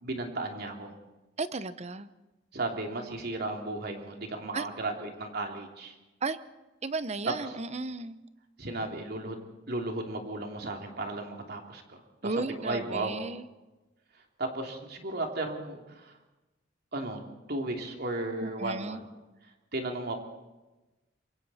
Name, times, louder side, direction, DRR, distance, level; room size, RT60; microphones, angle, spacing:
voice 1, 0.0-0.9 2.5-5.9 8.6-9.4 9.7-13.2 14.4-16.1 16.9-17.2 17.5-19.0 19.7-20.2, right 2 dB, 55° right, 3 dB, 2.9 m, -35 dB
voice 2, 1.4-2.1 4.5-4.7 6.2-6.4 6.8-8.2 12.2-13.4 18.4-19.0, right 3 dB, 35° right, 13 dB, 0.9 m, -34 dB
26.5 x 23.0 x 4.3 m, 1.1 s
head